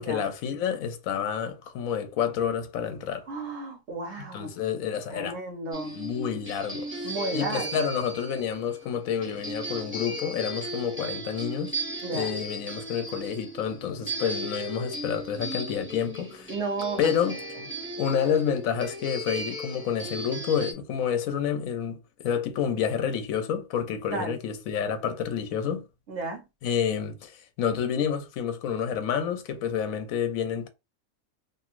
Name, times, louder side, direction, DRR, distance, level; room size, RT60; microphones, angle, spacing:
voice 1, 0.0-3.3 4.2-5.4 5.9-7.0 7.3-11.7 12.1-16.5 17.0-17.4 18.0-25.8 26.6-30.7, left 8 dB, 75° left, 1.0 m, -29 dB
voice 2, 3.3-4.5 5.1-6.0 7.0-7.8 12.0-12.3 16.5-17.1 24.1-24.4 26.1-26.4, right 3 dB, 60° right, 1.0 m, -33 dB
sound 1, 5.7-20.7, right 1 dB, 15° right, 0.5 m, -36 dB
3.1 x 2.5 x 2.4 m
omnidirectional pair, 1.5 m